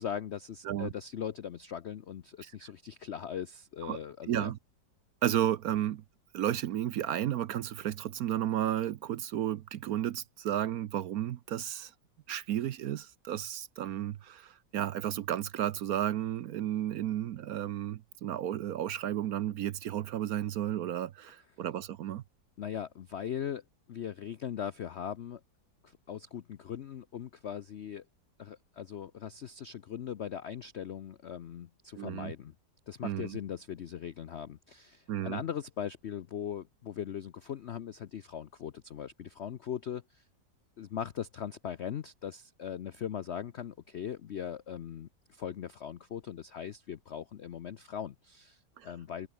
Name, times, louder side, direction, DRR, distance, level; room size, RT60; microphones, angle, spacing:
voice 1, 0.0-4.5 22.6-25.4 25.8-28.0 28.4-32.5 32.9-40.2 40.8-49.3, left 9 dB, 70° left, 0.6 m, -40 dB
voice 2, 4.3-4.6 5.2-6.0 6.3-11.9 12.3-22.2 32.0-32.3 33.0-33.4 35.1-35.4 48.8-48.9, right 11 dB, 65° right, 1.0 m, -33 dB
omnidirectional pair, 2.0 m